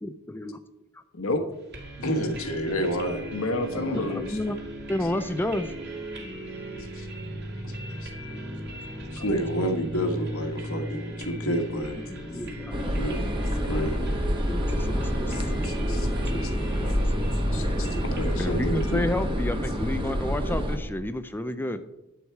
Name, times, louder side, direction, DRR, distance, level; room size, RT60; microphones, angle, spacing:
voice 1, 0.0-0.6 0.9-1.0 3.9-4.6 4.9-5.7 8.1-8.4 10.7-10.8 11.4-11.5 12.1-12.7 14.5-15.3 16.3-16.7 17.0-17.2 17.7-18.0 18.4-21.8, left 1 dB, 10° left, 11 dB, 0.4 m, -31 dB
sound 1, 1.7-20.4, right 1 dB, 50° right, 2.6 m, -38 dB
voice 2, 2.0-3.3 3.7-4.1 9.1-12.0 12.8-13.2 13.6-14.0 18.0-19.0, equal, 85° left, 4 dB, 1.6 m, -29 dB
voice 3, 3.3-4.4 6.9-7.1 8.0-8.1 15.3-16.1 16.4-16.5 17.4-17.9, left 2 dB, 65° left, 7 dB, 1.2 m, -32 dB
sound 2, 9.8-16.4, left 1 dB, 30° left, 1.2 m, -43 dB
sound 3, 12.7-20.8, equal, 25° right, 1.3 m, -27 dB
11.0 x 8.0 x 4.6 m, 0.94 s
head